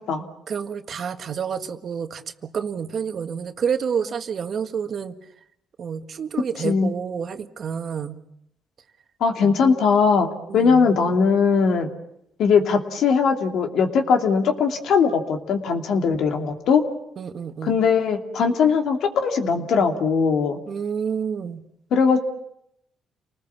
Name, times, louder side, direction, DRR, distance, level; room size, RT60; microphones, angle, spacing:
voice 1, 0.5-5.1 5.8-8.2 9.4-9.6 10.5-10.9 17.2-17.8 20.7-21.6, right 7 dB, 55° right, 8 dB, 1.6 m, -29 dB
voice 2, 9.2-10.3 10.5-11.9 12.4-16.8 17.6-20.6 21.9-22.2, left 5 dB, 75° left, 5 dB, 2.8 m, -20 dB
29.5 x 20.0 x 7.2 m, 0.77 s
cardioid pair, 90°, 0 cm